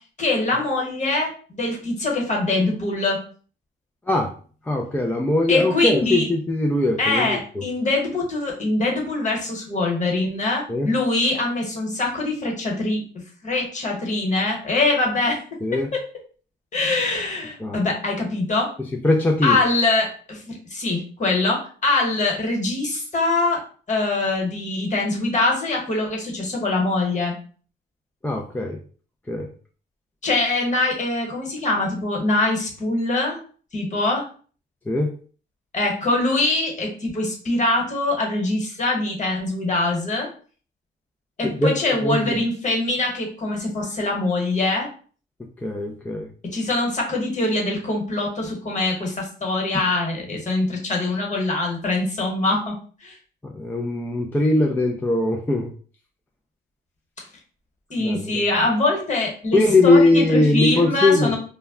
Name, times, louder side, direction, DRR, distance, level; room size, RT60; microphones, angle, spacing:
voice 1, 0.2-3.2 5.5-6.3 7.0-13.0 13.4-15.4 15.9-16.0 16.7-18.7 19.4-23.6 23.9-27.3 30.2-33.4 33.7-34.3 35.7-40.3 41.4-44.9 46.5-53.2 57.9-61.4, left 2 dB, 35° left, -1 dB, 1.2 m, -23 dB
voice 2, 4.6-7.6 10.7-10.9 15.6-15.9 17.6-17.8 19.0-19.6 28.2-28.8 29.3-29.5 34.9-35.1 41.5-41.7 42.0-42.4 45.6-46.3 53.4-55.7 58.0-58.4 59.5-61.3, left 2 dB, 10° left, 1 dB, 0.3 m, -20 dB
2.2 x 2.1 x 3.5 m, 0.42 s
cardioid pair, 90°, 20 cm